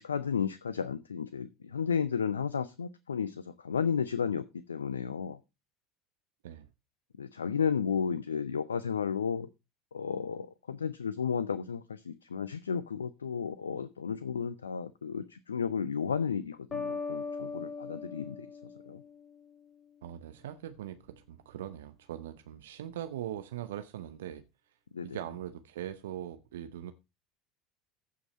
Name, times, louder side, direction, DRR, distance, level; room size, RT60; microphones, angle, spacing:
voice 1, 0.0-5.4 7.2-9.5 9.9-19.0 24.9-25.2, left 6 dB, 85° left, 16 dB, 0.5 m, -33 dB
sound 1, 16.7-19.5, left 4 dB, 25° left, 2.7 m, -39 dB
voice 2, 20.0-24.4 25.0-26.9, right 11 dB, 70° right, 10 dB, 0.7 m, -41 dB
15.0 x 5.7 x 4.1 m, 0.26 s
figure-of-eight pair, 70°, 0 cm